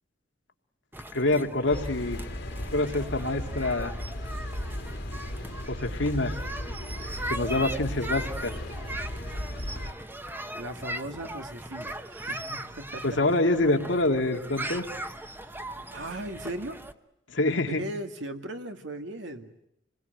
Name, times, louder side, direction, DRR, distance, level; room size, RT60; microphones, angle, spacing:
sound 1, 0.9-16.9, right 1 dB, 10° right, 1.0 m, -39 dB
voice 1, 1.1-2.2 2.7-3.9 5.7-6.3 7.3-8.5 13.0-14.9 17.3-17.8, left 2 dB, 90° left, 4 dB, 2.2 m, -26 dB
sound 2, 1.7-9.9, left 1 dB, 65° left, 2.0 m, -36 dB
voice 2, 10.5-13.4 15.9-16.8 17.6-19.5, right 1 dB, 85° right, 6 dB, 2.1 m, -38 dB
27.5 x 21.0 x 9.1 m, 0.81 s
head